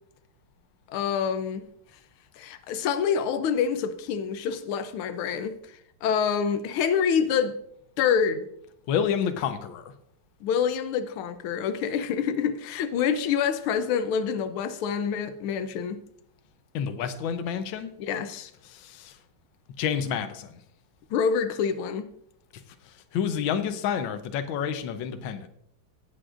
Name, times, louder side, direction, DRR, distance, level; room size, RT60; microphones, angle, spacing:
voice 1, 0.9-1.6 2.4-5.6 6.0-7.6 8.0-8.5 10.4-16.0 18.0-18.5 21.1-22.1, left 7 dB, 90° left, 1.6 m, -26 dB
voice 2, 8.9-9.9 16.7-17.9 18.6-19.2 19.8-20.6 23.1-25.5, left 8 dB, 75° left, 1.5 m, -29 dB
18.0 x 7.7 x 2.5 m
omnidirectional pair, 2.3 m